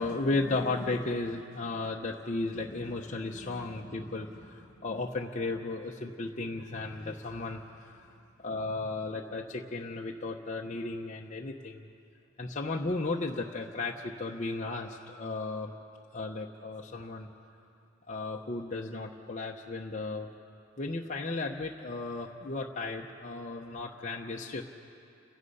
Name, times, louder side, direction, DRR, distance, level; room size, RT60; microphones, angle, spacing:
voice 1, 0.0-8.1 8.4-11.9 12.4-15.7 16.1-17.3 18.1-20.3 20.8-24.6, left 2 dB, 35° left, -1 dB, 0.9 m, -35 dB
29.5 x 16.5 x 5.5 m, 2.5 s
head